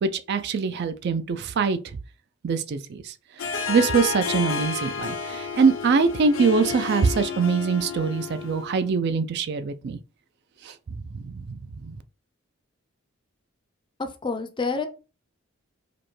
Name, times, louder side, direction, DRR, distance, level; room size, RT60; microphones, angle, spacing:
voice 1, 0.0-1.8 2.4-3.1 3.7-10.0 10.7-10.8 11.1-11.6 11.8-11.9, right 5 dB, 50° right, 0.3 m, -23 dB
Harp, 3.4-8.9, left 5 dB, 80° left, 0.6 m, -31 dB
voice 2, 14.0-14.9, left 4 dB, 25° left, 0.4 m, -28 dB
5.0 x 2.1 x 3.1 m
head